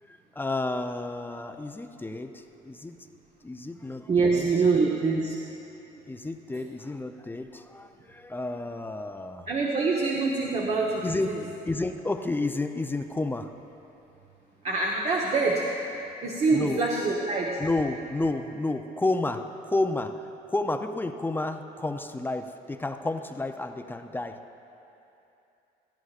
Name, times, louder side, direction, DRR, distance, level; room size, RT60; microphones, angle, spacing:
voice 1, 0.1-3.0 3.4-4.4 6.1-9.5 11.0-11.4 11.7-13.5 16.5-16.8 17.6-24.4, left 2 dB, 10° left, 7 dB, 0.5 m, -31 dB
voice 2, 4.1-5.4 9.5-11.4 14.6-15.7 16.2-17.6, right 4 dB, 40° right, -2 dB, 1.0 m, -25 dB
17.5 x 13.0 x 2.4 m, 2.8 s
cardioid pair, 110°, 17 cm